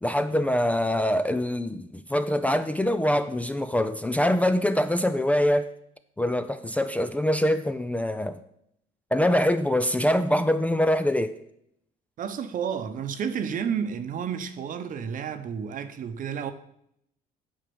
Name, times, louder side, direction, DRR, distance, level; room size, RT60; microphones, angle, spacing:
voice 1, 0.0-5.7 6.2-8.4 9.1-11.3, left 1 dB, 10° left, 0.5 m, -24 dB
voice 2, 12.2-16.5, right 7 dB, 50° right, 0.9 m, -31 dB
8.9 x 4.8 x 7.0 m
cardioid pair, 110°, 17 cm